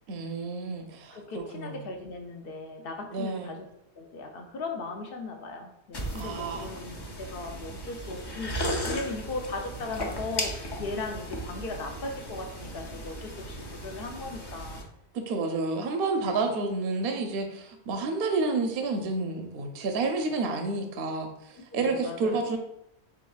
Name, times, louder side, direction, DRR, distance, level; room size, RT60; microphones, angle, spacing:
voice 1, 0.1-1.8 3.1-3.6 6.1-6.7 15.1-22.6, right 3 dB, 65° right, 5 dB, 0.7 m, -30 dB
voice 2, 1.1-3.7 4.0-14.8 16.2-16.6 21.7-22.4, left 3 dB, 60° left, 3 dB, 0.8 m, -38 dB
sound 1, 5.9-14.8, equal, 35° left, 0.4 m, -36 dB
4.9 x 3.5 x 2.3 m, 0.80 s
omnidirectional pair, 1.1 m